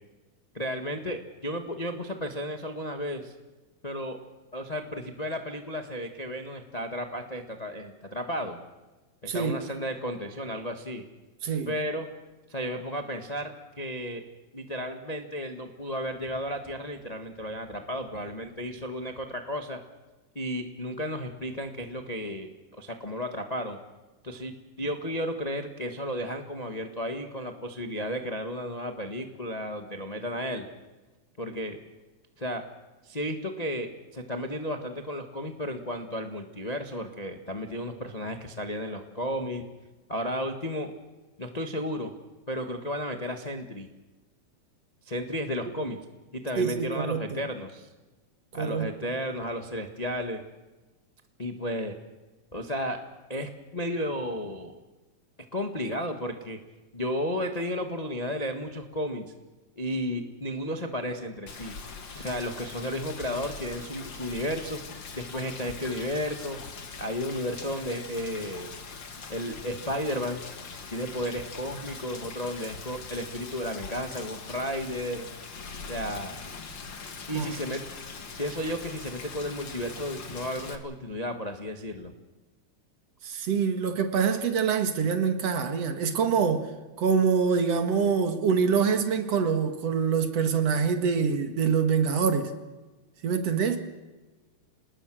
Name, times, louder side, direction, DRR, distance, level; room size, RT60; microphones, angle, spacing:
voice 1, 0.5-3.3 3.8-4.2 4.5-8.6 9.3-11.0 11.6-12.1 12.5-14.2 14.5-19.8 20.3-22.5 22.8-23.8 24.2-30.7 31.4-31.8 32.4-32.6 33.0-39.6 40.1-40.9 41.4-42.1 42.5-43.9 45.0-46.0 46.3-47.9 48.5-50.4 51.4-51.9 52.5-53.0 53.3-54.8 55.5-56.6 56.9-59.3 59.8-61.7 62.1-64.8 65.1-66.6 67.0-68.7 69.3-70.4 70.9-75.3 75.9-76.4 77.3-77.8 78.4-82.1, equal, 25° left, 0.8 m, -33 dB
voice 2, 9.3-9.6 11.4-11.7 46.6-47.4 48.6-48.9 77.3-77.5 83.2-86.7 87.0-92.5 93.2-93.8, right 6 dB, 55° right, 2.7 m, -25 dB
Rain, 61.5-80.8, left 4 dB, 40° left, 2.2 m, -42 dB
27.0 x 20.0 x 6.3 m
omnidirectional pair, 3.5 m